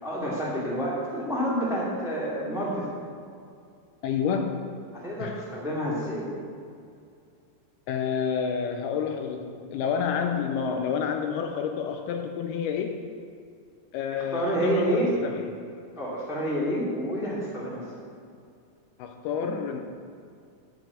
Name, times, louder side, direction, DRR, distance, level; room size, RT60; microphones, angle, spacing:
voice 1, 0.0-2.8 4.9-6.3 14.1-15.1 15.9-17.9, equal, 5° right, -6 dB, 0.5 m, -28 dB
voice 2, 4.0-4.7 5.2-5.4 7.9-13.2 13.9-15.8 19.0-19.8, left 7 dB, 85° left, 5 dB, 2.3 m, -29 dB
10.0 x 4.9 x 8.0 m, 2.4 s
omnidirectional pair, 4.8 m